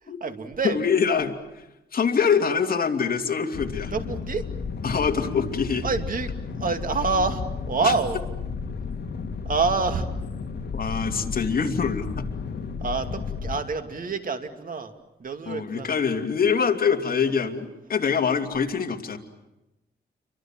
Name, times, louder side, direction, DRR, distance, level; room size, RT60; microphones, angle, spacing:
voice 1, 0.0-0.8 3.9-4.4 5.8-6.3 6.6-8.2 9.4-10.1 12.8-14.9 15.2-16.1, right 4 dB, 50° right, 7 dB, 2.6 m, -27 dB
voice 2, 0.6-1.3 1.9-3.9 4.8-5.8 7.8-7.9 10.7-12.3 15.5-19.2, left 6 dB, 55° left, 4 dB, 2.8 m, -24 dB
sound 1, 3.5-13.6, left 5 dB, 70° left, 2.0 m, -33 dB
29.5 x 24.5 x 7.6 m, 0.95 s
wide cardioid pair, 125°, 18 cm